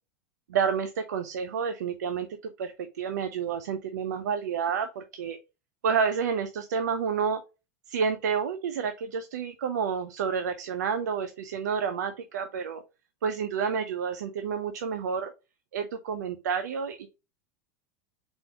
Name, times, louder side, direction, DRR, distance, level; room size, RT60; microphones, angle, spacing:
voice 1, 0.5-5.4 5.8-7.4 7.9-12.8 13.2-15.3 15.7-17.1, right 6 dB, 90° right, 8 dB, 0.5 m, -29 dB
4.4 x 3.4 x 2.8 m, 0.28 s
supercardioid pair, 120°, 9 cm